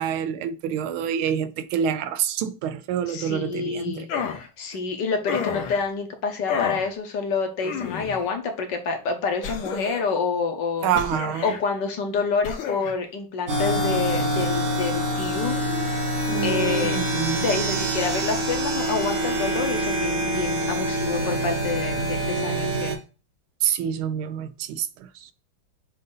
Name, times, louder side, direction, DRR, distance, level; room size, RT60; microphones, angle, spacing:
voice 1, 0.0-4.1 10.8-11.6 16.3-17.5 23.6-25.3, right 8 dB, 85° right, 1.4 m, -27 dB
voice 2, 3.1-4.1 4.6-10.9 11.4-16.2 16.4-17.0 17.4-23.0, left 5 dB, 65° left, 1.5 m, -28 dB
sound 1, 4.1-4.5 5.3-5.8 6.5-6.9 7.6-8.2 9.4-10.1 10.9-11.6 12.4-12.9, left 6 dB, 80° left, 1.7 m, -30 dB
sound 2, 13.5-23.0, right 1 dB, 50° right, 1.3 m, -25 dB
6.6 x 2.7 x 5.4 m
omnidirectional pair, 2.2 m